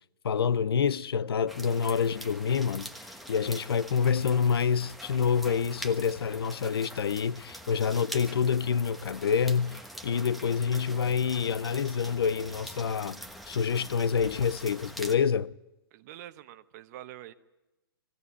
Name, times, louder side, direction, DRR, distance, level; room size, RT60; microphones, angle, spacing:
voice 1, 0.2-15.5, left 6 dB, 80° left, 0.6 m, -27 dB
sound 1, 1.5-15.2, equal, ahead, 1.2 m, -44 dB
voice 2, 15.9-17.3, right 13 dB, 45° right, 1.1 m, -45 dB
19.5 x 16.5 x 9.6 m
hypercardioid pair, 135°, 12 cm